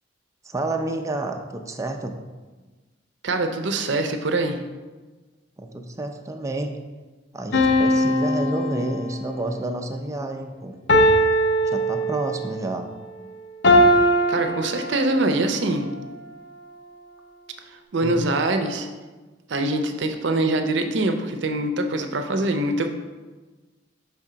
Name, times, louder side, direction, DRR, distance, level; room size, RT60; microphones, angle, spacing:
voice 1, 0.4-2.2 5.6-6.7 7.3-10.7 11.6-12.9 18.0-18.2, right 2 dB, 15° right, 4 dB, 0.4 m, -29 dB
voice 2, 3.2-4.6 14.3-15.9 17.9-18.9 19.5-22.9, right 2 dB, 65° right, 6 dB, 0.6 m, -23 dB
sound 1, 7.5-9.4 10.9-12.5 13.6-15.4, equal, 60° left, 0.5 m, -20 dB
4.9 x 3.5 x 5.6 m, 1.3 s
head